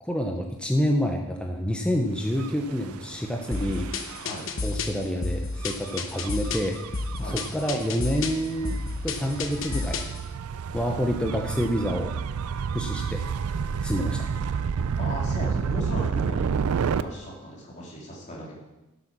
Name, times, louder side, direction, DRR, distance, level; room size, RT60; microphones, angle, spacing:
voice 1, 0.0-3.8 4.6-6.8 7.2-10.0 10.7-12.1 12.7-13.2 13.8-14.2, equal, 5° left, 2 dB, 0.7 m, -28 dB
Gull seagull / Waves surf / Siren, 2.3-17.0, right 6 dB, 90° right, 0.4 m, -31 dB
sound 1, 3.5-10.2, left 3 dB, 60° left, 0.9 m, -31 dB
voice 2, 15.0-18.5, equal, 35° left, -3 dB, 3.0 m, -37 dB
11.5 x 6.9 x 6.0 m, 1.0 s
head